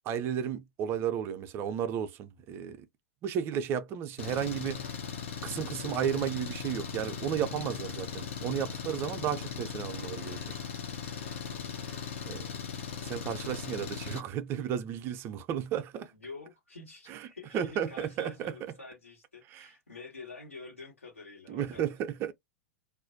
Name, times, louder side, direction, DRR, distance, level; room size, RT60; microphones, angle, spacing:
voice 1, 0.1-2.8 3.2-4.9 5.4-10.4 12.3-12.4 13.0-16.1 17.1-17.3 17.5-18.7 19.5-19.7 21.5-22.3, right 9 dB, 35° right, 0.5 m, -33 dB
Engine, 4.2-14.2, left 7 dB, 65° left, 0.7 m, -38 dB
voice 2, 11.4-11.8 16.1-21.9, left 4 dB, 85° left, 1.3 m, -47 dB
2.4 x 2.1 x 2.6 m
figure-of-eight pair, 95°, 7 cm